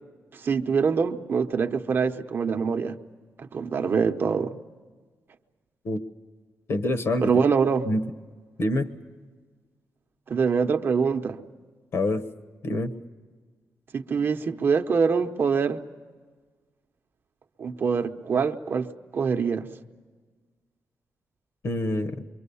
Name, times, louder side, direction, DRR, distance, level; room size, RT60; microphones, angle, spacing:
voice 1, 0.3-3.0 3.4-4.6 7.2-7.9 10.3-11.4 13.9-15.8 17.6-18.9 19.1-19.7, right 5 dB, 40° right, 6 dB, 0.8 m, -24 dB
voice 2, 6.7-7.3 7.8-8.0 8.6-8.9 11.9-12.2 12.6-12.9 21.6-22.2, left 1 dB, 50° left, 11 dB, 1.2 m, -26 dB
26.0 x 24.0 x 7.0 m, 1.4 s
wide cardioid pair, 175°, 6 cm